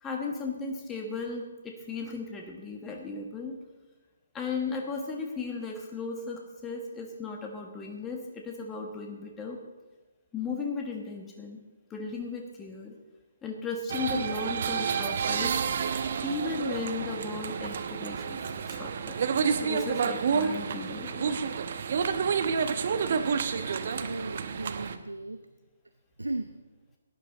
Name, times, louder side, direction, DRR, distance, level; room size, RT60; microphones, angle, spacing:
voice 1, 0.0-3.6 4.3-9.6 10.3-11.6 11.9-12.9 13.4-15.6 16.2-18.4 18.7-19.1 19.6-21.4, left 4 dB, 15° left, 1 dB, 1.4 m, -36 dB
sound 1, 13.9-25.0, right 6 dB, 55° right, 0.9 m, -29 dB
voice 2, 23.5-25.5 26.2-26.6, right 2 dB, 90° right, 11 dB, 0.6 m, -37 dB
17.5 x 11.0 x 3.9 m, 1.2 s
figure-of-eight pair, 140°, 0 cm